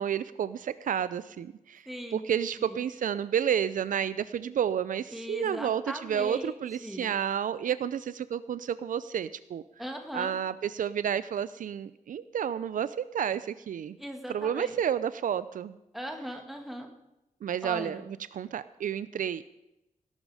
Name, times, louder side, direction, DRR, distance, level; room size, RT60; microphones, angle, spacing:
voice 1, 0.0-1.8 2.1-9.6 10.1-14.0 14.3-15.8 17.4-19.5, right 9 dB, 75° right, 15 dB, 0.5 m, -31 dB
voice 2, 1.9-2.3 2.6-2.8 5.1-7.2 9.8-10.3 14.0-14.8 15.9-16.9 17.6-18.1, equal, ahead, 4 dB, 2.0 m, -39 dB
18.0 x 11.5 x 5.0 m, 0.91 s
wide cardioid pair, 160°, 14 cm